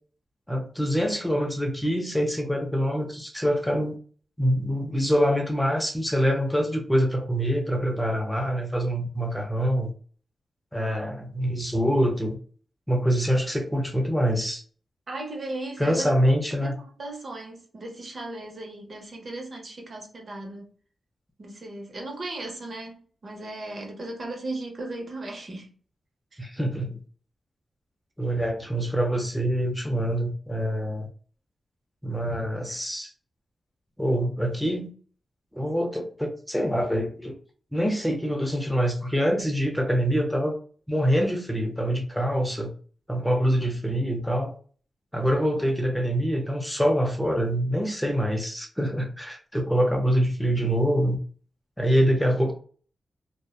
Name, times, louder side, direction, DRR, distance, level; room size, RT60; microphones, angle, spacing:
voice 1, 0.5-4.0 4.4-9.9 10.7-12.4 12.9-14.6 15.8-16.7 26.4-27.0 28.2-31.1 32.0-33.1 34.0-34.9 35.5-37.3 37.7-40.6 40.9-42.7 43.1-44.6 45.1-51.2 51.8-52.5, equal, 5° left, 0.6 m, -25 dB
voice 2, 15.1-16.1 16.6-20.7 21.4-25.7 26.3-26.5, right 2 dB, 50° right, 0.8 m, -36 dB
2.6 x 2.1 x 2.3 m
cardioid pair, 80°, 0 cm